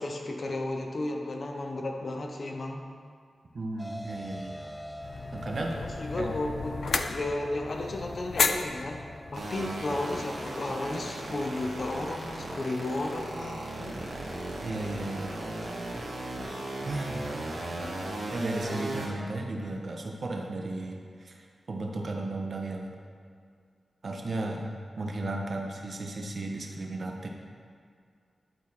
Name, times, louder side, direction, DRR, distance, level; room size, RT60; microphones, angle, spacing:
voice 1, 0.0-2.8 5.8-9.1 9.3-14.0, left 2 dB, 55° left, 2 dB, 0.8 m, -33 dB
voice 2, 3.5-4.6 5.3-5.8 6.2-6.3 14.6-15.4 16.8-17.3 18.3-23.0 24.0-24.7 25.0-27.3, right 2 dB, 60° right, 1 dB, 1.0 m, -34 dB
sound 1, 3.8-9.4, equal, 10° left, 0.5 m, -44 dB
sound 2, 5.0-10.4, left 4 dB, 70° left, 0.4 m, -33 dB
sound 3, 9.3-19.1, right 1 dB, 80° right, 1.7 m, -36 dB
10.5 x 4.2 x 4.2 m, 2.2 s
cardioid pair, 65°, 0 cm